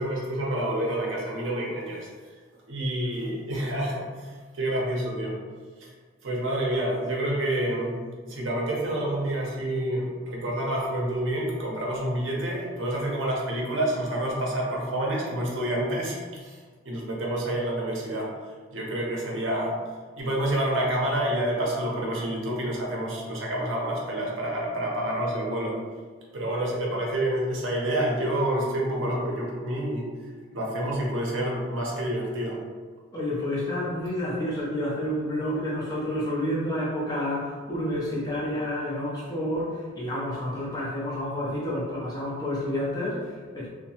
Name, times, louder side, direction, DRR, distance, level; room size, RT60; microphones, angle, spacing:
voice 1, 0.0-2.1 2.7-5.4 5.8-5.9 6.2-16.6 16.9-19.8 20.2-25.7 26.3-30.1 30.5-32.6, right 1 dB, 70° right, -3 dB, 0.6 m, -28 dB
voice 2, 33.1-43.7, left 1 dB, 20° left, -6 dB, 0.5 m, -29 dB
2.7 x 2.1 x 2.8 m, 1.5 s
head